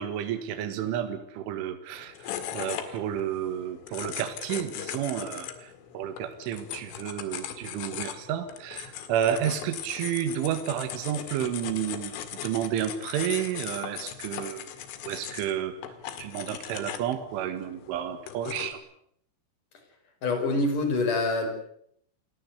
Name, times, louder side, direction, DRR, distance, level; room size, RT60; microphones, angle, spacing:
voice 1, 0.0-12.2 12.4-14.7 15.0-15.8 16.2-18.8, right 10 dB, 75° right, 8 dB, 4.1 m, -31 dB
sound 1, 1.9-18.7, left 10 dB, 80° left, 4.5 m, -39 dB
voice 2, 20.2-21.5, left 2 dB, 40° left, 5 dB, 6.5 m, -25 dB
29.5 x 17.5 x 8.2 m, 0.69 s
omnidirectional pair, 5.7 m